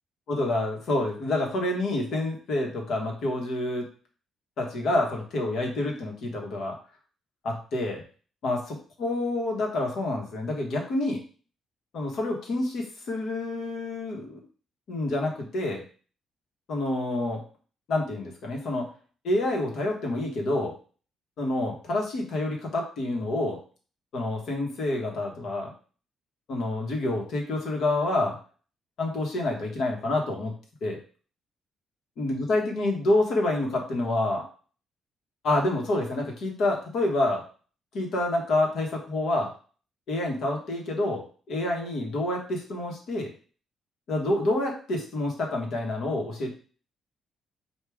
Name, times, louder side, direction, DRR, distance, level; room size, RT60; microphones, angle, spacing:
voice 1, 0.3-3.9 4.6-6.8 7.4-8.0 8.4-8.6 9.0-11.2 11.9-14.4 14.9-15.8 16.7-17.4 17.9-18.9 19.2-20.7 21.4-23.6 24.1-25.7 26.5-28.4 29.0-30.5 30.8-31.0 32.2-34.4 35.4-37.4 37.9-39.5 40.1-43.3 44.1-46.5, left 2 dB, 70° left, 0 dB, 1.3 m, -28 dB
4.7 x 2.6 x 3.5 m, 0.40 s
cardioid pair, 90°, 0 cm